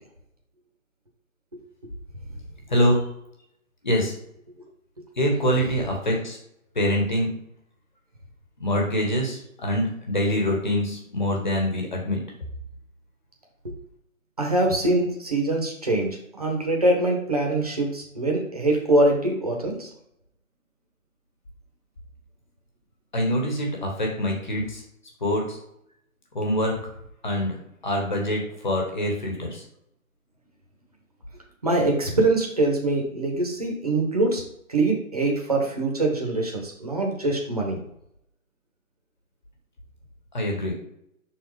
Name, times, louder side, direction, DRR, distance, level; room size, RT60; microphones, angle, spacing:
voice 1, 2.7-3.0 3.8-4.1 5.2-6.4 6.7-7.3 8.6-12.2 23.1-24.8 25.2-25.6 26.3-26.8 27.2-27.6 27.8-29.6 40.3-40.7, equal, 35° left, 0 dB, 1.5 m, -24 dB
voice 2, 14.4-19.9 31.6-34.4 34.7-37.8, right 2 dB, 25° right, 0 dB, 1.1 m, -23 dB
6.3 x 4.0 x 4.7 m, 0.76 s
hypercardioid pair, 175°, 42 cm